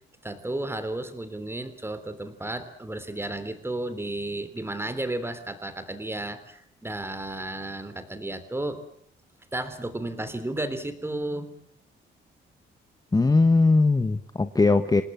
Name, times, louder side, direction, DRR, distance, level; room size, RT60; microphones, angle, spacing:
voice 1, 0.2-8.8 9.5-11.6, right 1 dB, 10° right, 11 dB, 3.4 m, -33 dB
voice 2, 13.1-15.0, left 3 dB, 20° left, 9 dB, 1.2 m, -20 dB
27.5 x 19.0 x 7.5 m, 0.65 s
cardioid pair, 90°, 20 cm